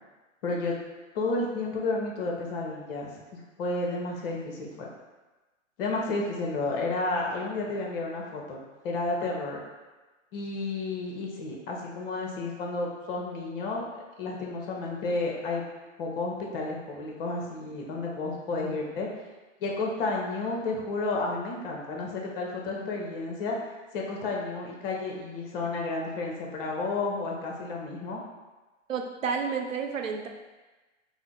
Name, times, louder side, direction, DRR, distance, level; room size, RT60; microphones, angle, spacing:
voice 1, 0.4-0.7 1.1-4.9 5.8-9.6 10.3-13.8 14.2-15.6 16.0-19.1 19.6-23.6 23.9-28.2, left 3 dB, 45° left, -1 dB, 0.8 m, -31 dB
voice 2, 28.9-30.3, right 6 dB, 90° right, 3 dB, 0.5 m, -30 dB
3.6 x 2.0 x 3.6 m, 1.2 s
figure-of-eight pair, 110°, 38 cm